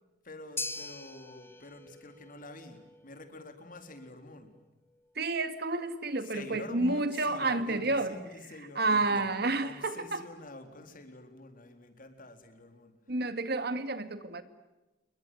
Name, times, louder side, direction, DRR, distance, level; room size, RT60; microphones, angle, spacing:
voice 1, 0.2-4.6 6.2-12.9, left 2 dB, 50° left, 7 dB, 4.0 m, -47 dB
sound 1, 0.6-8.9, left 3 dB, 15° left, 1.5 m, -46 dB
voice 2, 5.2-8.2 8.8-10.2 13.1-14.4, right 2 dB, 65° right, 11 dB, 2.1 m, -30 dB
28.5 x 23.0 x 9.2 m, 1.1 s
head